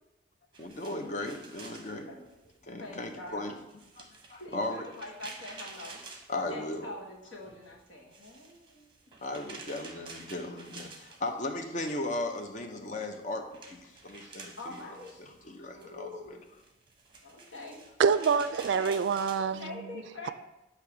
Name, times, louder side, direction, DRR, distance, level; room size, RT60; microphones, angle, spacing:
sound 1, 0.5-7.1 7.4-11.8 12.1-19.7, right 3 dB, 25° right, 0.8 m, -50 dB
voice 1, 0.6-2.1 2.7-3.6 4.0-4.1 4.3-4.9 6.3-6.9 9.2-14.8 15.2-16.4, left 2 dB, 40° left, 4 dB, 0.6 m, -36 dB
voice 2, 2.8-3.5 4.4-6.0 6.5-8.9 14.6-15.1 15.7-16.4 17.2-17.8 18.7-18.9 19.6-20.3, left 2 dB, 85° left, -2 dB, 1.4 m, -44 dB
voice 3, 18.0-19.9, right 6 dB, 70° right, 13 dB, 0.3 m, -26 dB
6.6 x 2.9 x 5.8 m, 0.95 s
head